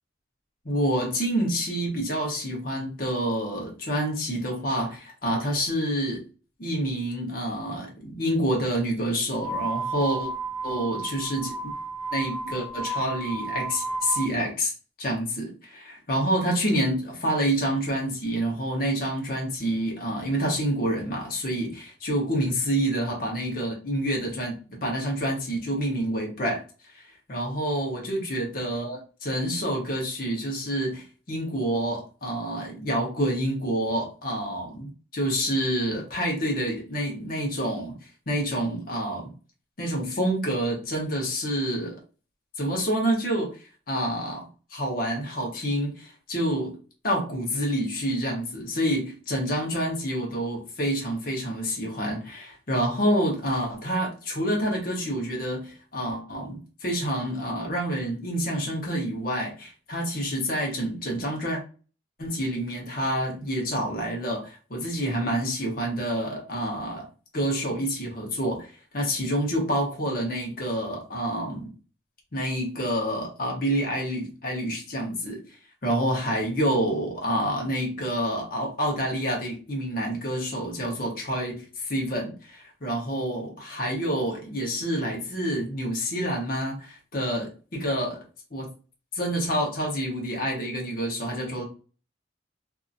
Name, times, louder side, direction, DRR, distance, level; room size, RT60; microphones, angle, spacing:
voice 1, 0.6-6.2 6.6-10.3 10.6-11.7 12.1-14.7 15.0-26.6 26.9-27.0 27.3-38.0 38.3-39.3 39.8-42.0 42.6-43.5 43.9-44.4 44.7-46.8 47.0-61.6 62.2-67.1 67.3-71.7 72.3-75.4 75.8-88.2 88.5-88.7 89.1-91.6, equal, 50° left, -1 dB, 1.0 m, -28 dB
sound 1, 9.3-14.3, right 3 dB, ahead, 0.4 m, -32 dB
2.7 x 2.6 x 2.5 m, 0.35 s
head